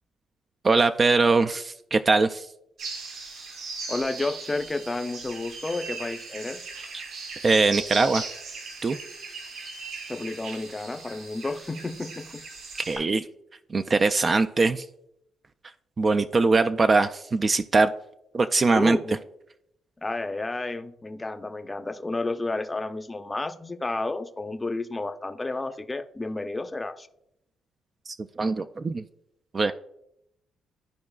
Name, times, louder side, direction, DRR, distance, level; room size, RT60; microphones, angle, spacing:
voice 1, 0.6-2.5 6.9-7.0 7.4-8.2 8.8-9.0 12.8-13.2 13.7-14.8 16.0-17.9 18.3-19.0 28.1-29.0 29.5-29.7, right 3 dB, 35° right, 0.3 m, -22 dB
sound 1, 2.8-13.0, right 4 dB, 75° right, 2.8 m, -38 dB
voice 2, 3.9-6.6 10.1-12.4 18.7-19.2 20.0-27.1, left 2 dB, 20° left, 0.6 m, -31 dB
13.0 x 4.7 x 2.3 m
cardioid pair, 90°, 0 cm